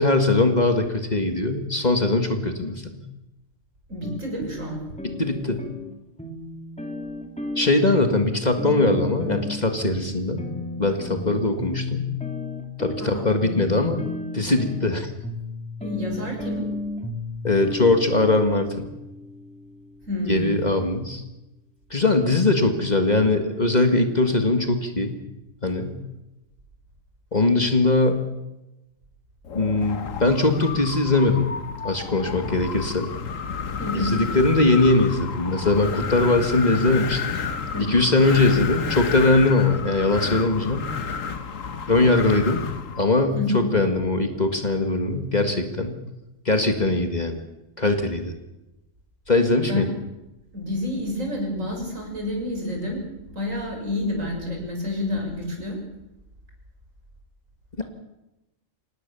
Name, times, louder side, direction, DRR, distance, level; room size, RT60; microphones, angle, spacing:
voice 1, 0.0-3.0 5.2-5.6 7.6-10.5 10.8-12.0 12.8-14.1 14.3-15.1 17.4-18.9 20.3-21.2 21.9-25.2 25.6-26.0 27.3-28.2 29.5-31.5 31.8-33.1 33.9-37.4 37.9-40.8 41.9-42.6 43.0-46.0 46.5-47.4 47.8-48.3 49.3-49.9 57.8-57.9, left 2 dB, 30° left, 6 dB, 2.0 m, -21 dB
voice 2, 3.9-4.8 13.0-13.3 15.8-16.6 20.1-20.6 33.8-34.1 37.3-37.9 43.4-43.7 49.6-49.8 50.5-55.8, left 1 dB, 70° right, 1 dB, 6.8 m, -29 dB
sound 1, 4.0-20.3, left 2 dB, 5° left, 2.2 m, -34 dB
Wind, 29.5-43.1, left 6 dB, 75° left, 1.6 m, -31 dB
25.5 x 18.5 x 6.9 m, 0.96 s
omnidirectional pair, 1.4 m